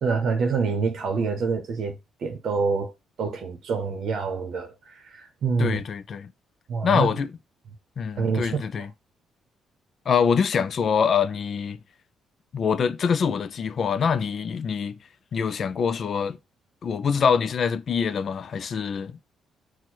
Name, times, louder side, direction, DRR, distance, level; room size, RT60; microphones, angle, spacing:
voice 1, 0.0-2.9 3.2-5.8 6.7-7.1 8.2-8.8, right 5 dB, 65° right, 0.7 m, -26 dB
voice 2, 5.6-6.3 6.8-7.3 8.0-8.9 10.1-11.8 12.5-15.0 15.3-16.4 16.8-19.2, left 6 dB, 55° left, 0.4 m, -24 dB
4.3 x 2.1 x 4.5 m
cardioid pair, 90°, 0 cm